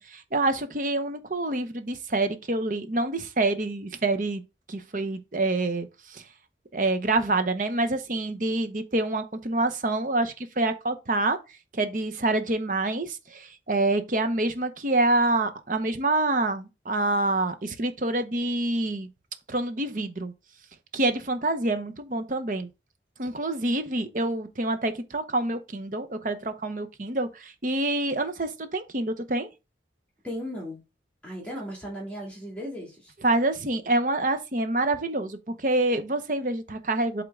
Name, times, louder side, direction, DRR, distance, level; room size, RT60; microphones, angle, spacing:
voice 1, 0.0-4.4 4.7-6.2 6.7-11.4 11.7-19.1 19.5-20.3 20.9-22.7 23.2-29.5 33.2-37.2, right 2 dB, 45° right, 0.8 m, -27 dB
voice 2, 30.2-30.8 31.2-33.1, equal, 10° left, 2.5 m, -36 dB
8.1 x 3.7 x 3.6 m
head